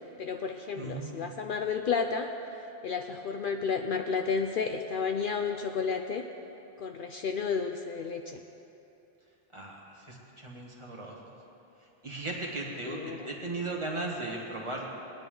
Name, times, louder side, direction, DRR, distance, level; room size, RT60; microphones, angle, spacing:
voice 1, 0.2-2.3 2.8-6.3 6.8-8.4 12.9-13.2, left 5 dB, 60° left, 5 dB, 0.7 m, -31 dB
voice 2, 0.8-1.3 9.5-11.3 12.0-14.9, right 2 dB, 30° right, -2 dB, 1.7 m, -37 dB
19.0 x 9.9 x 3.8 m, 2.9 s
omnidirectional pair, 1.1 m